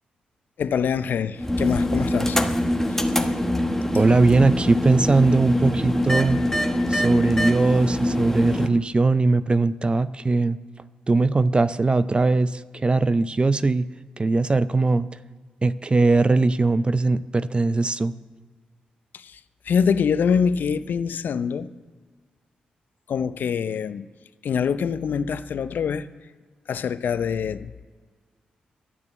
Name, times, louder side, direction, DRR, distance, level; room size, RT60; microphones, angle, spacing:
voice 1, 0.6-2.4 2.9-3.0 19.1-19.4 19.6-21.7 23.1-24.1 24.4-26.1 26.7-27.7, left 6 dB, 65° left, 0.6 m, -24 dB
sound 1, 1.4-8.7, left 1 dB, 10° left, 1.3 m, -23 dB
voice 2, 3.9-6.4 6.9-10.6 11.1-13.9 14.2-15.1 15.6-18.1, right 3 dB, 30° right, 0.5 m, -20 dB
12.0 x 6.7 x 8.3 m
hypercardioid pair, 40°, 3 cm